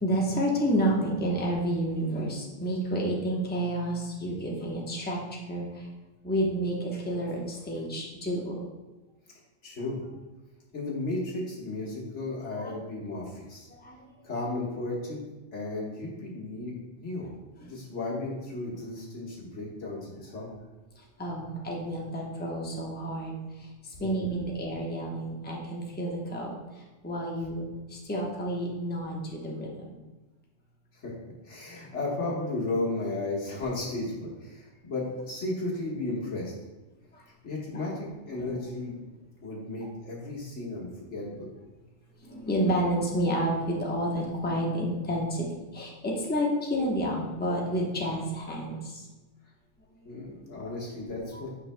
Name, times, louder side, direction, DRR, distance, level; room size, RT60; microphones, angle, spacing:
voice 1, 0.0-5.9 6.2-8.6 12.6-12.8 13.7-14.1 17.6-17.7 21.0-29.7 37.1-37.2 38.3-38.5 42.2-45.5 45.7-49.1 49.9-50.1 51.3-51.4, right 1 dB, 10° left, -2 dB, 1.0 m, -30 dB
voice 2, 9.6-10.1 10.7-13.7 14.2-15.2 15.5-17.3 17.6-20.6 24.0-24.3 30.9-31.1 31.4-36.5 37.4-39.0 39.4-41.5 50.1-51.5, left 2 dB, 75° left, -4 dB, 1.8 m, -34 dB
9.2 x 5.6 x 2.2 m, 1.2 s
omnidirectional pair, 1.2 m